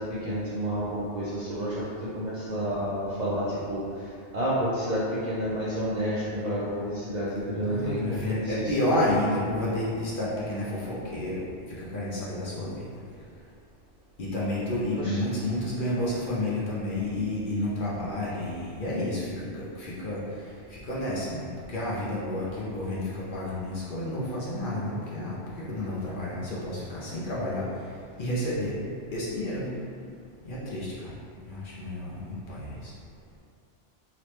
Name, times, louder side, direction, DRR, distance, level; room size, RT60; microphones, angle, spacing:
voice 1, 0.0-9.0 15.0-15.2, equal, 55° right, -8 dB, 0.5 m, -30 dB
voice 2, 7.6-11.4 11.8-12.8 14.2-20.2 20.7-27.6 28.2-28.8 29.1-29.7 30.4-30.9 31.5-32.9, left 1 dB, 55° left, -7 dB, 0.7 m, -30 dB
3.1 x 2.9 x 3.0 m, 2.3 s
omnidirectional pair, 1.2 m